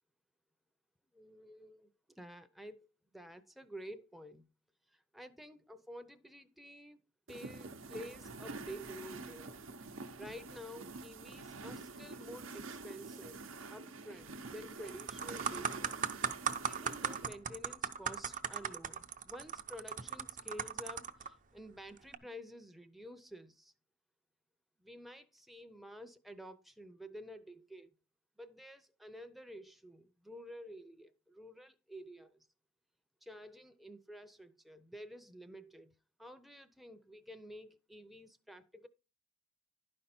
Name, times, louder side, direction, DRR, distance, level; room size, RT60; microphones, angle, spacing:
voice 1, 1.1-1.9 2.2-2.9 3.1-4.4 4.9-7.0 7.3-9.5 10.2-13.4 13.7-16.1 16.6-23.7 24.8-27.9 28.4-32.5 33.2-35.9 36.2-38.9, equal, ahead, 0.6 m, -50 dB
sound 1, 7.3-17.3, right 3 dB, 75° right, 0.8 m, -47 dB
sound 2, 14.3-14.5 14.9-21.3 22.0-22.2, right 7 dB, 40° right, 0.6 m, -38 dB
11.5 x 5.3 x 4.3 m
head